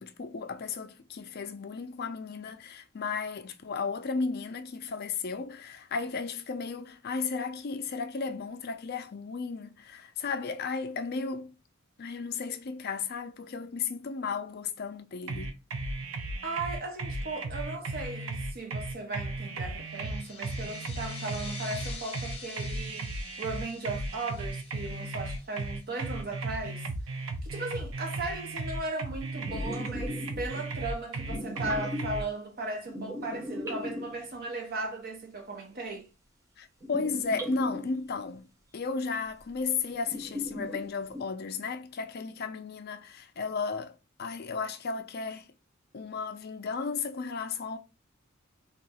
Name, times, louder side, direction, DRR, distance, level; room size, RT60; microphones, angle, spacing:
voice 1, 0.0-11.5 12.0-15.6 36.6-45.5 45.9-47.8, left 5 dB, 50° left, 0.4 m, -34 dB
sound 1, 15.3-32.2, right 2 dB, 75° right, 0.6 m, -35 dB
voice 2, 16.4-26.8 27.4-36.1, right 2 dB, 45° right, 1.0 m, -37 dB
sound 2, 19.8-26.1, left 4 dB, 30° left, 0.8 m, -47 dB
sound 3, 29.3-30.9 31.2-32.3 32.9-34.6 36.8-38.0 39.4-39.5 39.9-41.2, left 1 dB, 15° right, 0.7 m, -38 dB
2.7 x 2.4 x 4.1 m
head